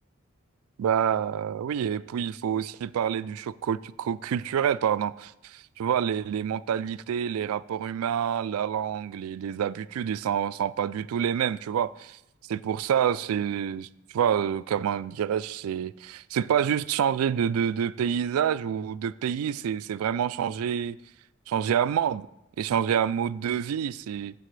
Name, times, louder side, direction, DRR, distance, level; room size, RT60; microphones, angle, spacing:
voice 1, 0.8-12.2 12.5-13.9 14.1-21.0 21.5-22.3 22.6-24.3, right 8 dB, 85° right, 0.3 m, -27 dB
12.5 x 7.4 x 3.2 m
head